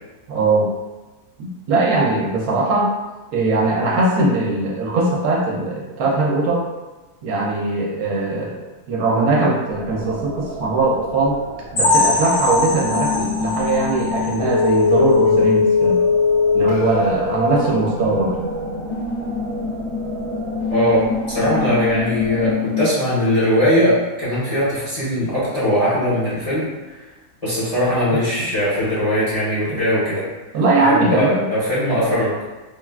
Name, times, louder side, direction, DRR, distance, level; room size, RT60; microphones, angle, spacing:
voice 1, 0.3-0.7 1.4-2.9 3.3-6.6 7.2-8.6 8.9-11.4 11.7-16.0 16.5-18.4 30.5-31.5, right 2 dB, 75° right, -2 dB, 1.1 m, -20 dB
sound 1, 9.7-22.5, right 1 dB, 50° right, 1.0 m, -35 dB
sound 2, 11.8-15.4 15.8-15.9 16.3-16.4 16.9-17.0, left 3 dB, 85° left, 1.4 m, -22 dB
sound 3, 12.9-22.9, left 5 dB, 65° left, 0.7 m, -21 dB
voice 2, 20.7-26.7 27.4-30.2 30.8-32.3, equal, 30° left, -11 dB, 0.8 m, -20 dB
3.3 x 2.3 x 2.3 m, 1.2 s
omnidirectional pair, 1.6 m